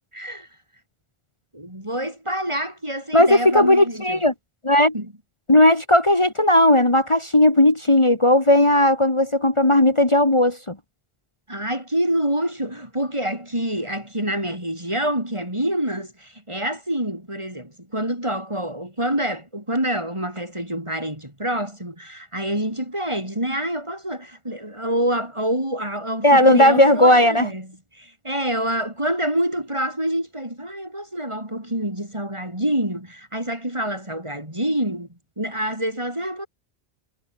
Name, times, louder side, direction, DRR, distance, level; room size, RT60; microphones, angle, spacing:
voice 1, 0.1-0.5 1.5-4.2 4.9-5.1 11.5-27.7 27.9-36.5, right 1 dB, 30° right, 6.2 m, -27 dB
voice 2, 3.1-4.3 4.6-4.9 5.5-10.8 26.2-27.5, left 1 dB, 30° left, 2.4 m, -16 dB
omnidirectional pair, 1.0 m